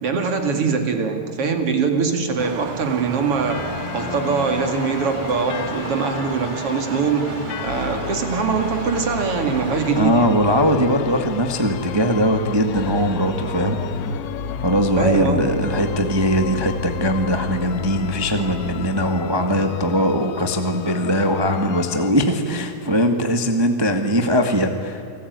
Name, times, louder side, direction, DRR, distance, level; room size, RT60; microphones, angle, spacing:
voice 1, 0.0-10.4 15.0-15.5, right 5 dB, 45° right, 5 dB, 3.0 m, -23 dB
Engine, 2.4-10.0, right 8 dB, 80° right, 2.8 m, -34 dB
sound 1, 3.5-22.1, left 12 dB, 75° left, 2.3 m, -34 dB
sound 2, 7.7-18.9, left 3 dB, 40° left, 1.5 m, -32 dB
voice 2, 9.9-14.2 14.6-25.0, equal, 30° right, 5 dB, 0.4 m, -20 dB
29.0 x 20.0 x 9.6 m, 2.7 s
omnidirectional pair, 4.1 m